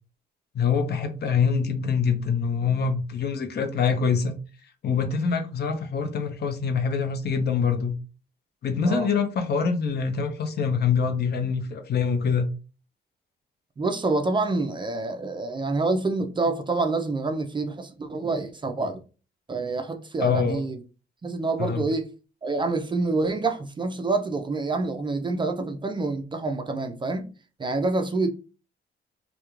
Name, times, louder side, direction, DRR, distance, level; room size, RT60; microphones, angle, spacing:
voice 1, 0.5-4.4 4.8-8.0 8.6-12.5 20.2-20.6 21.6-21.8, left 6 dB, 55° left, 0.6 m, -25 dB
voice 2, 13.8-19.0 19.5-20.8 21.2-22.1 22.4-27.3 27.6-28.3, right 3 dB, 25° right, 0.4 m, -27 dB
2.3 x 2.1 x 3.0 m
cardioid pair, 90°, 20 cm